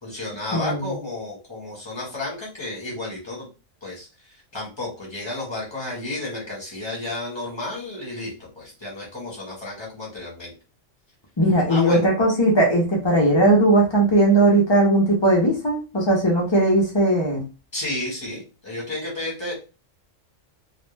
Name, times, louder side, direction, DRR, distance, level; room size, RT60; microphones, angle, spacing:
voice 1, 0.0-3.5 3.8-4.1 4.5-10.5 11.7-12.1 17.7-19.5, left 2 dB, 20° left, -4 dB, 1.1 m, -32 dB
voice 2, 0.5-0.9 11.4-17.4, right 1 dB, 45° left, -2 dB, 0.3 m, -18 dB
2.4 x 2.1 x 3.1 m, 0.32 s
omnidirectional pair, 1.4 m